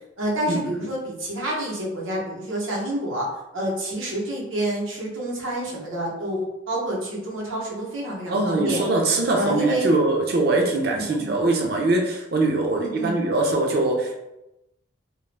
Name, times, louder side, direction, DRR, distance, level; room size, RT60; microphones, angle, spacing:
voice 1, 0.2-3.2 3.5-8.8 9.3-9.9 10.9-11.4 12.8-13.2, right 1 dB, 85° right, -4 dB, 0.8 m, -28 dB
voice 2, 8.3-14.2, right 2 dB, 50° right, 1 dB, 0.5 m, -22 dB
2.3 x 2.0 x 3.1 m, 0.92 s
head